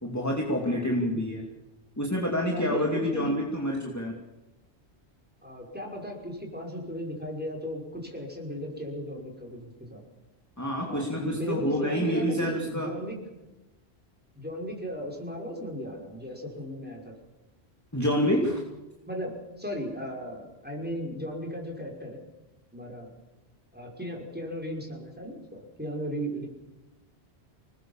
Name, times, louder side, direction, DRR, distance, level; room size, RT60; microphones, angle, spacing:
voice 1, 0.0-1.4 2.0-4.1 10.6-12.9 17.9-18.6, equal, 15° left, -1 dB, 2.8 m, -27 dB
voice 2, 2.5-3.4 5.4-10.1 10.8-13.2 14.4-17.1 19.1-22.2 22.7-23.1 23.7-26.5, equal, 10° right, 0 dB, 5.6 m, -36 dB
25.5 x 20.0 x 7.4 m, 1.0 s
omnidirectional pair, 1.1 m